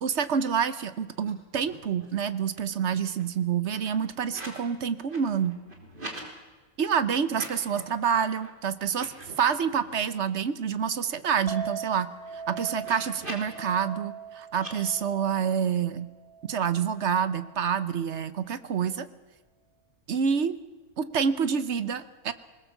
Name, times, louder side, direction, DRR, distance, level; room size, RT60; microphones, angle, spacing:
voice 1, 0.0-5.6 6.8-16.1 16.5-19.1 20.1-20.6 21.0-22.3, right 7 dB, 55° right, 14 dB, 1.1 m, -27 dB
sound 1, 1.2-1.3 1.6-2.2 2.6-4.6 4.9-6.3 7.2-8.0 8.4-8.5 8.9-10.2 10.6-10.7 10.9-13.6 14.5-14.7, right 1 dB, 35° right, 3.3 m, -44 dB
Chink clink, 11.5-17.8, right 6 dB, 20° right, 2.9 m, -41 dB
20.5 x 20.0 x 7.2 m, 1.3 s
omnidirectional pair, 1.5 m